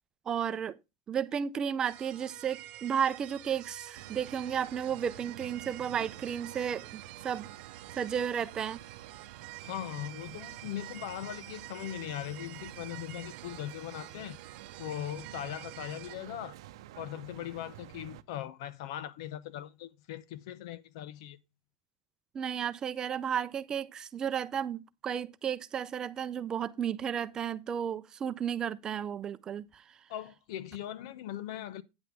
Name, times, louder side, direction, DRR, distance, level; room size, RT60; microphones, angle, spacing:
voice 1, 0.3-0.8 1.1-7.5 8.0-8.8 22.3-29.8, right 8 dB, 25° right, 0.5 m, -33 dB
sound 1, 1.8-16.2, right 16 dB, 50° right, 1.1 m, -48 dB
sound 2, 3.9-18.2, right 13 dB, 85° right, 0.7 m, -50 dB
voice 2, 9.6-14.4 14.8-16.6 17.0-21.4 30.1-31.8, left 12 dB, 70° left, 0.8 m, -40 dB
9.7 x 7.9 x 3.5 m
supercardioid pair, 145°, 3 cm